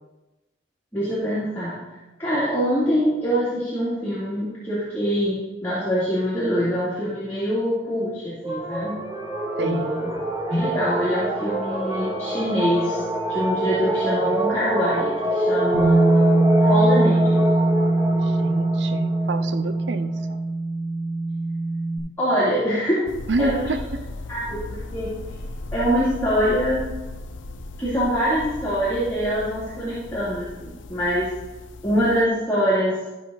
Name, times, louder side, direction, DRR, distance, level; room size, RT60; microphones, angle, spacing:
voice 1, 0.9-1.8 2.2-9.0 9.6-10.1 10.5-13.0 13.3-17.4 22.2-23.0 23.4-23.7 24.3-25.1 25.7-26.8 27.8-31.3 31.8-33.1, equal, 10° left, -11 dB, 2.8 m, -24 dB
sound 1, 8.4-20.3, equal, 20° right, 1.1 m, -26 dB
voice 2, 9.6-9.9 18.1-20.4 23.3-24.0, right 2 dB, 70° right, 11 dB, 0.6 m, -29 dB
Bass guitar, 15.7-22.0, right 2 dB, 45° right, 2.3 m, -21 dB
sound 2, 23.1-32.2, left 2 dB, 85° left, 0.7 m, -37 dB
13.5 x 6.3 x 4.1 m, 1.1 s
head